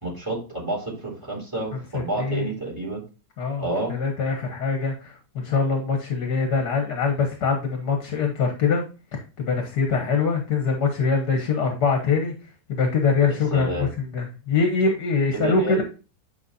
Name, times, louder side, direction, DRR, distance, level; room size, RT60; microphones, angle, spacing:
voice 1, 0.0-3.0 3.6-3.9 13.5-13.9 15.3-15.8, right 2 dB, 10° right, -2 dB, 3.5 m, -29 dB
voice 2, 1.9-2.5 3.4-8.8 9.1-12.3 12.7-15.8, left 5 dB, 65° left, 4 dB, 1.8 m, -23 dB
9.3 x 5.1 x 2.7 m, 0.33 s
omnidirectional pair, 1.9 m